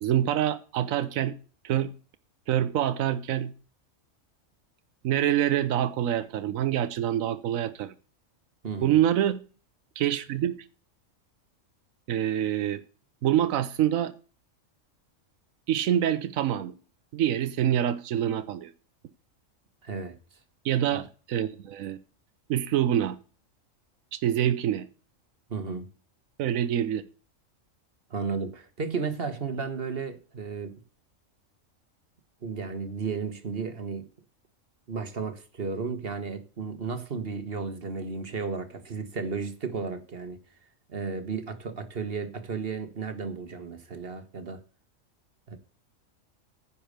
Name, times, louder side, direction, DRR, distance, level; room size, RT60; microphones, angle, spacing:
voice 1, 0.0-1.4 1.6-1.9 2.5-3.5 5.0-7.9 8.8-9.4 10.0-10.6 12.1-12.8 13.2-14.1 15.7-16.7 17.1-18.7 20.6-22.0 22.5-23.2 24.1-24.9 26.4-27.0, right 11 dB, 85° right, 1.1 m, -26 dB
voice 2, 8.6-9.0 19.8-20.2 25.5-25.9 28.1-30.8 32.4-34.0 34.9-40.4 40.9-44.6 45.5-45.6, right 5 dB, 50° right, 1.4 m, -33 dB
10.5 x 5.5 x 6.5 m
omnidirectional pair, 1.4 m